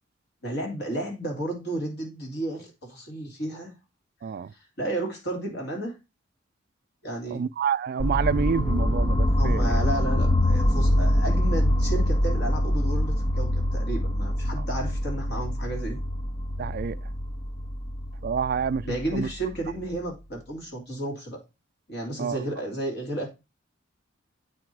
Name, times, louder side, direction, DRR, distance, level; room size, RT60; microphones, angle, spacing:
voice 1, 0.4-3.7 4.8-6.0 7.0-7.4 9.4-16.0 18.8-21.4 21.9-23.3, right 1 dB, 60° left, 3.0 m, -32 dB
voice 2, 7.3-9.8 16.6-17.0 18.2-18.9 19.1-19.3 22.2-22.4, right 6 dB, 50° right, 0.3 m, -28 dB
sound 1, 8.0-19.9, left 1 dB, 20° left, 0.4 m, -25 dB
8.5 x 4.8 x 4.6 m
head